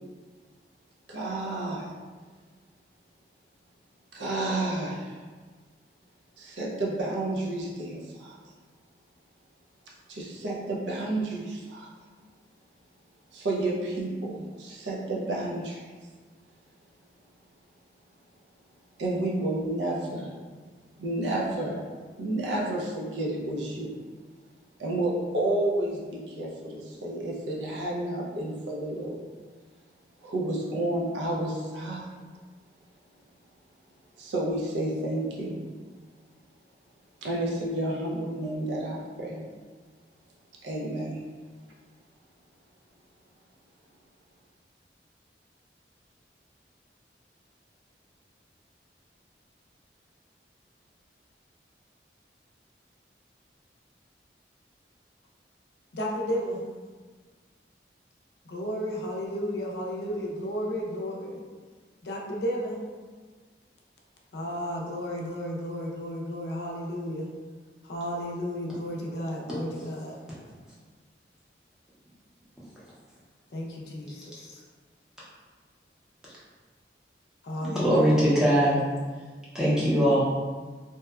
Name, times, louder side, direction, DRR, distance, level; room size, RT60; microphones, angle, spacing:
voice 1, 1.1-1.9 4.1-5.2 6.4-8.3 10.1-11.9 13.3-15.8 19.0-20.3 21.0-21.8 22.2-23.9 24.8-29.2 30.2-32.1 34.2-35.6 37.2-39.5 40.6-41.2, right 1 dB, 85° right, -3 dB, 0.5 m, -30 dB
voice 2, 55.9-56.6 58.5-61.4 62.0-62.8 64.3-67.3 67.8-70.2 73.5-74.6 77.4-78.1, equal, 65° left, -2 dB, 0.4 m, -33 dB
voice 3, 77.6-78.8 79.5-80.2, equal, 5° right, -9 dB, 0.6 m, -21 dB
2.8 x 2.1 x 2.3 m, 1.4 s
head